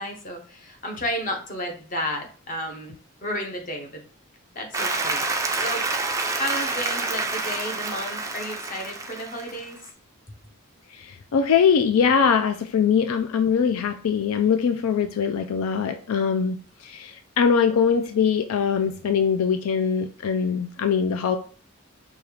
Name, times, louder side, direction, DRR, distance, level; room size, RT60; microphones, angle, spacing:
voice 1, 0.0-2.9 3.2-4.0 4.5-5.2 5.6-5.9 6.3-9.8, equal, 40° left, 2 dB, 0.9 m, -32 dB
Applause, 4.7-9.8, right 3 dB, 15° right, 0.3 m, -28 dB
voice 2, 11.0-16.6 16.8-21.4, left 6 dB, 80° left, 7 dB, 0.4 m, -22 dB
5.3 x 2.3 x 3.2 m, 0.43 s
head